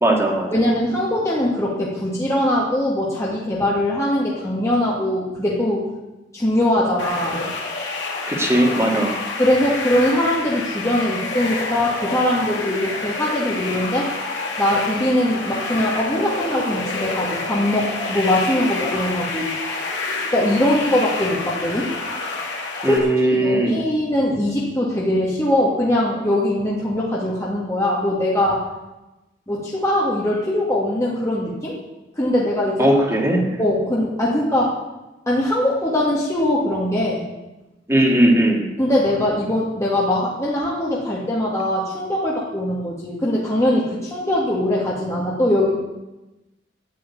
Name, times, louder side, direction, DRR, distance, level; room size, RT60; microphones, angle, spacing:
voice 1, 0.0-0.5 8.3-9.1 22.8-23.8 32.8-33.6 37.9-38.6, right 1 dB, 15° right, 0 dB, 2.4 m, -18 dB
voice 2, 0.5-5.8 6.3-7.5 9.4-14.1 14.6-19.5 20.3-21.9 22.8-23.1 23.3-28.6 29.5-31.8 32.2-32.9 33.6-34.7 35.3-37.2 38.8-45.7, left 1 dB, 15° left, -5 dB, 2.1 m, -21 dB
sound 1, 7.0-23.0, left 3 dB, 75° left, 3.4 m, -28 dB
10.5 x 9.6 x 8.6 m, 1.0 s
head